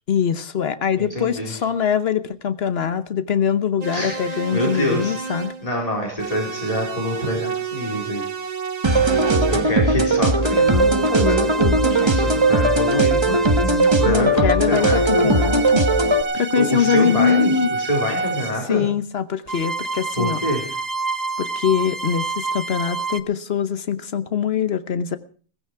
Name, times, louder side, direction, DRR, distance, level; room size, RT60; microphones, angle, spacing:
voice 1, 0.1-5.5 14.0-15.8 16.3-17.7 18.7-20.4 21.4-25.2, left 7 dB, 50° left, 12 dB, 1.1 m, -23 dB
voice 2, 1.0-1.5 3.9-8.3 9.5-15.3 16.5-18.9 20.2-20.6, left 1 dB, 25° left, -1 dB, 4.4 m, -26 dB
sound 1, 3.8-5.7 6.2-9.8 10.4-14.3 14.7-18.6 19.5-23.2, right 4 dB, 40° right, 0.7 m, -28 dB
sound 2, 8.8-16.2, right 2 dB, 20° right, 1.1 m, -18 dB
16.0 x 15.5 x 4.7 m, 0.41 s
omnidirectional pair, 1.5 m